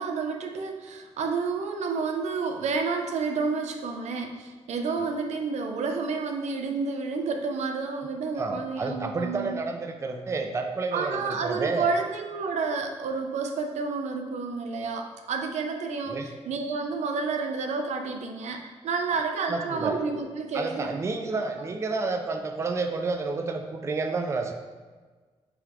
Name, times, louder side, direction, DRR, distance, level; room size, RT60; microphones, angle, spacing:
voice 1, 0.0-9.6 10.9-21.0, right 4 dB, 90° right, 4 dB, 0.6 m, -30 dB
voice 2, 8.4-11.9 16.1-16.3 19.5-20.0 20.5-24.5, right 3 dB, 25° right, 5 dB, 0.4 m, -30 dB
7.8 x 4.0 x 3.1 m, 1.4 s
wide cardioid pair, 160°, 11 cm